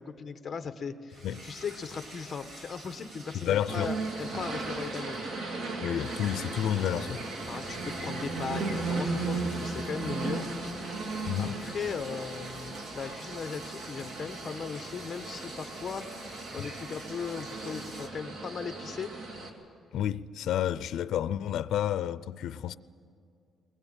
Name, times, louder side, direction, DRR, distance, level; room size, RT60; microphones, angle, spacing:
voice 1, 0.0-5.3 7.5-10.4 11.4-16.1 16.5-19.1, left 5 dB, 30° left, 1.1 m, -38 dB
sound 1, 1.1-18.1, right 1 dB, 50° right, 2.6 m, -48 dB
voice 2, 3.3-3.9 5.8-7.2 11.3-11.7 16.6-16.7 19.9-22.7, left 10 dB, 75° left, 0.5 m, -30 dB
sound 2, 3.7-19.5, right 3 dB, 70° right, 2.9 m, -36 dB
sound 3, 6.2-11.3, left 3 dB, ahead, 4.7 m, -47 dB
21.0 x 20.5 x 9.0 m
cardioid pair, 170°, 0 cm